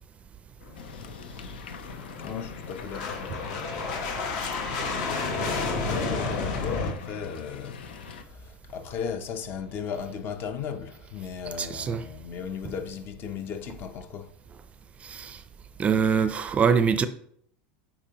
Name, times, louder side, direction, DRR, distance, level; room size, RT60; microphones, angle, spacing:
sound 1, 0.6-6.9, left 3 dB, 65° left, 1.6 m, -31 dB
sound 2, 0.7-8.2, left 6 dB, 85° left, 0.7 m, -43 dB
voice 1, 2.2-3.6 4.5-14.3, left 7 dB, 45° left, 0.8 m, -36 dB
voice 2, 11.6-12.0 15.0-15.4 15.8-17.1, right 6 dB, 25° right, 0.5 m, -24 dB
8.7 x 4.8 x 2.9 m
supercardioid pair, 115°, 5 cm